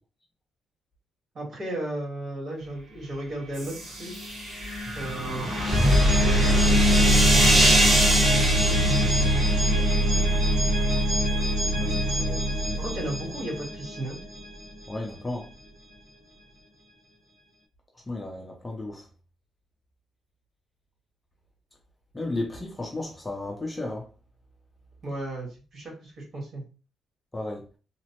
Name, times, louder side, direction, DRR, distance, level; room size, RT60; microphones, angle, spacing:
voice 1, 1.3-4.4 4.9-5.9 6.1-7.7 12.8-14.2 25.0-26.6, right 1 dB, 45° right, 1.3 m, -35 dB
sound 1, 3.5-14.4, equal, 70° right, 1.5 m, -23 dB
sound 2, 4.8-10.4, right 1 dB, 20° right, 0.7 m, -25 dB
voice 2, 11.8-12.8 14.9-15.5 18.1-19.0 22.1-24.0 27.3-27.6, left 2 dB, 15° left, 0.5 m, -34 dB
2.9 x 2.0 x 2.9 m
cardioid pair, 160°, 0 cm